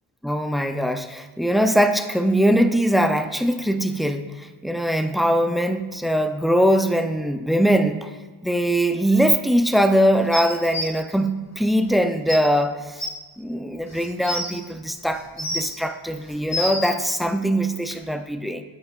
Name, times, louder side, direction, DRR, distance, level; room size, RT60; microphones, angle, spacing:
voice 1, 0.2-8.1 8.4-13.0 13.4-18.6, equal, ahead, 8 dB, 0.5 m, -21 dB
sound 1, 10.3-10.9 11.9-12.0 12.3-12.4 13.0-13.1 13.9-14.5 15.1-15.8 16.3-16.9 17.9-18.0, left 1 dB, 35° left, 1.5 m, -28 dB
8.4 x 8.1 x 2.5 m, 1.3 s
cardioid pair, 50°, 49 cm